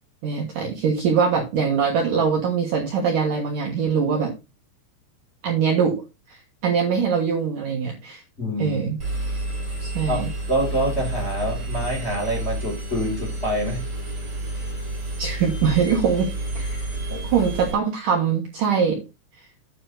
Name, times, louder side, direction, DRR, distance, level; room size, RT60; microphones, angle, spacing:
voice 1, 0.2-4.3 5.4-6.0 6.3-6.4 6.6-8.2 8.6-9.0 9.8-10.3 15.2-16.3 16.6-16.8 17.2-19.0, right 6 dB, 60° right, 0 dB, 2.6 m, -22 dB
voice 2, 8.4-8.8 10.1-13.8 17.1-17.2, equal, 15° left, -3 dB, 4.2 m, -26 dB
Engine, 9.0-17.7, right 2 dB, 30° right, 5.1 m, -30 dB
9.3 x 6.3 x 4.0 m, 0.28 s
omnidirectional pair, 5.0 m